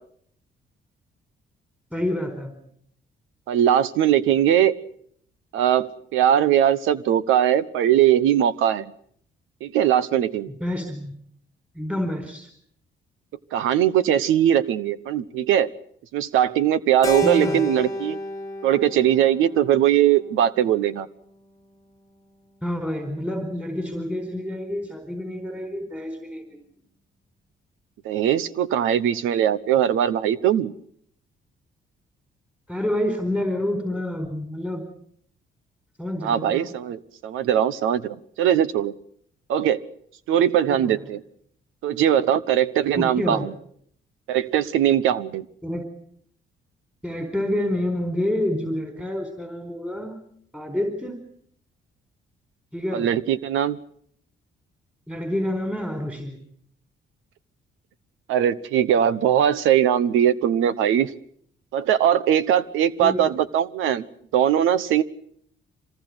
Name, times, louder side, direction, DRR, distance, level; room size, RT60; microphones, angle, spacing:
voice 1, 1.9-2.5 10.6-11.1 11.7-12.5 17.2-17.6 22.6-26.6 32.7-34.8 36.0-36.7 40.7-41.1 43.0-43.5 45.6-45.9 47.0-50.2 50.5-51.2 52.7-53.1 55.1-56.4 63.0-63.3, left 1 dB, 5° right, 6 dB, 4.6 m, -28 dB
voice 2, 3.5-4.7 5.5-8.9 9.6-10.5 13.5-15.7 16.1-18.2 18.6-21.1 28.0-30.7 36.2-38.9 39.5-39.8 40.3-41.2 41.8-43.5 44.3-45.4 52.9-53.8 58.3-61.1 61.7-64.0 64.3-65.0, right 10 dB, 90° right, 15 dB, 1.1 m, -20 dB
Keyboard (musical), 17.0-21.4, left 2 dB, 15° left, 1.6 m, -32 dB
26.0 x 19.5 x 8.0 m, 0.66 s
cardioid pair, 90°, 20 cm